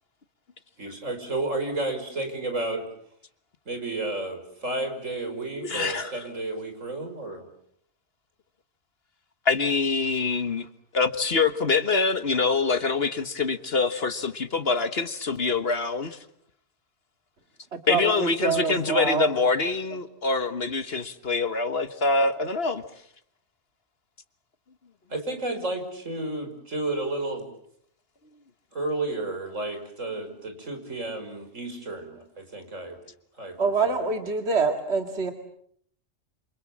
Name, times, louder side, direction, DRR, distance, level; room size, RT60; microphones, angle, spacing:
voice 1, 0.8-2.9 3.7-7.5 25.1-27.5 28.7-33.0 33.4-33.6 33.8-34.0, right 2 dB, 75° right, 6 dB, 5.9 m, -32 dB
voice 2, 5.6-6.2 9.4-10.7 10.9-16.2 17.9-22.8, left 4 dB, 50° left, 11 dB, 1.5 m, -25 dB
voice 3, 17.7-19.3 33.6-35.3, right 4 dB, 55° right, 5 dB, 2.4 m, -25 dB
28.0 x 28.0 x 7.4 m, 0.67 s
omnidirectional pair, 1.3 m